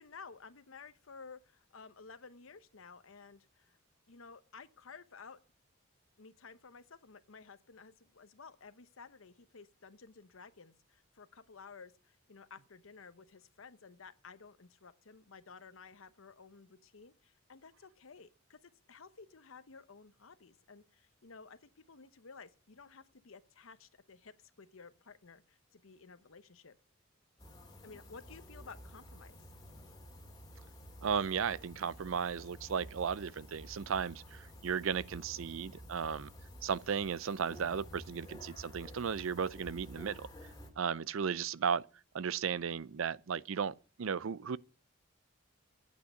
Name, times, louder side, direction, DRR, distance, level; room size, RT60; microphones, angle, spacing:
voice 1, 0.0-3.8 4.1-5.4 6.2-26.8 27.8-29.5, left 5 dB, 80° left, 0.9 m, -54 dB
sound 1, 27.4-40.7, equal, 20° left, 2.1 m, -51 dB
voice 2, 31.0-36.3 36.6-40.3 40.8-41.8 42.1-44.6, right 6 dB, 75° right, 0.5 m, -35 dB
9.0 x 8.5 x 8.0 m
head